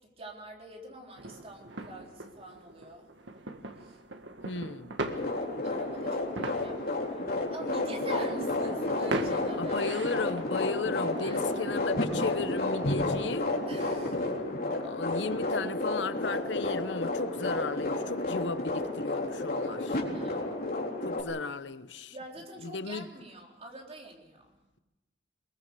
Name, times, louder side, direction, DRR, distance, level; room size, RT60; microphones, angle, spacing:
voice 1, 0.2-3.1 3.8-4.0 5.6-9.9 11.2-11.8 13.7-14.4 19.6-20.5 22.1-24.6, right 1 dB, 35° right, 3.8 m, -45 dB
sound 1, 1.2-12.3, right 2 dB, 85° right, 1.9 m, -41 dB
voice 2, 4.4-4.9 9.6-13.5 14.8-19.8 21.0-22.2 22.6-23.1, left 3 dB, 75° left, 0.9 m, -35 dB
sound 2, 5.0-21.2, left 2 dB, 55° left, 4.0 m, -31 dB
23.0 x 22.0 x 6.8 m
head